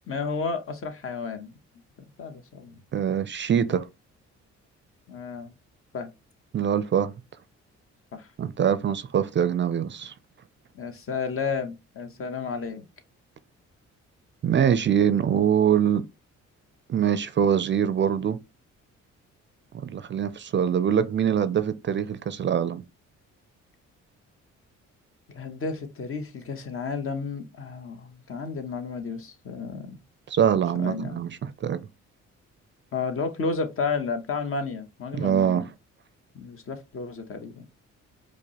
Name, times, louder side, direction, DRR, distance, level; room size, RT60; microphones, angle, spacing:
voice 1, 0.1-1.5 2.2-2.8 5.1-5.5 5.9-6.1 8.1-8.3 10.7-12.8 25.3-30.0 30.8-31.2 32.9-35.7 36.3-37.7, left 4 dB, 50° left, 0.9 m, -32 dB
voice 2, 2.9-3.9 6.5-7.1 8.4-10.1 14.4-16.0 16.9-18.4 19.8-22.8 30.3-31.8 35.1-35.7, right 8 dB, 40° right, 0.4 m, -23 dB
4.9 x 2.1 x 2.9 m
cardioid pair, 80°, 29 cm